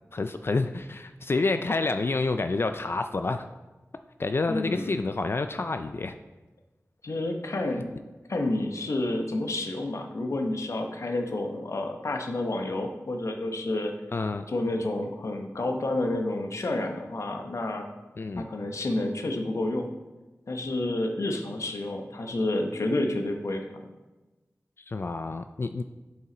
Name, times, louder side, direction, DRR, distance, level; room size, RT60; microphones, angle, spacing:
voice 1, 0.1-3.5 4.2-6.2 14.1-14.4 18.2-18.5 24.8-25.8, left 3 dB, 50° left, 8 dB, 0.3 m, -28 dB
voice 2, 4.5-4.9 7.0-8.0 8.3-13.9 14.5-17.9 18.4-19.9 20.5-23.8, left 2 dB, 70° left, 3 dB, 0.9 m, -29 dB
7.7 x 5.6 x 3.9 m, 1.1 s
wide cardioid pair, 65°, 5 cm